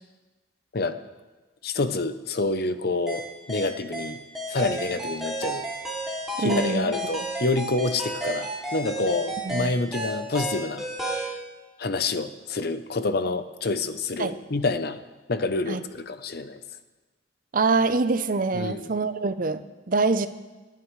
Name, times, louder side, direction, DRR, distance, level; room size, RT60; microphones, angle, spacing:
voice 1, 1.6-4.2 4.5-5.7 6.4-11.3 11.8-15.0 15.3-16.6 18.5-18.9, left 3 dB, 55° left, 11 dB, 0.7 m, -28 dB
sound 1, 3.1-11.4, right 1 dB, ahead, 2.5 m, -32 dB
voice 2, 6.4-6.9 9.5-9.7 14.2-14.4 15.7-15.8 17.5-20.3, right 3 dB, 45° right, 11 dB, 0.6 m, -25 dB
27.0 x 9.3 x 3.2 m, 1.2 s
head